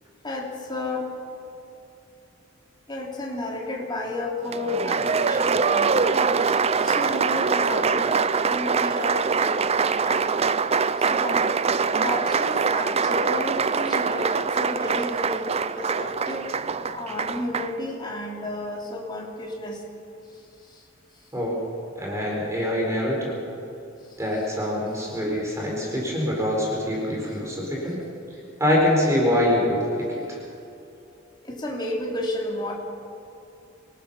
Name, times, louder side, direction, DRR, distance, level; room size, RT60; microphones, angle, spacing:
voice 1, 0.2-1.1 2.9-9.6 10.0-10.4 11.0-11.5 12.0-19.8 20.3-20.8 31.4-32.7, left 2 dB, 25° left, -2 dB, 3.6 m, -32 dB
Applause, 4.5-17.8, right 5 dB, 30° right, 0.5 m, -23 dB
voice 2, 22.0-23.4 24.2-28.0 28.6-30.4, left 1 dB, 15° right, -3 dB, 4.7 m, -24 dB
27.0 x 19.0 x 5.7 m, 2.7 s
head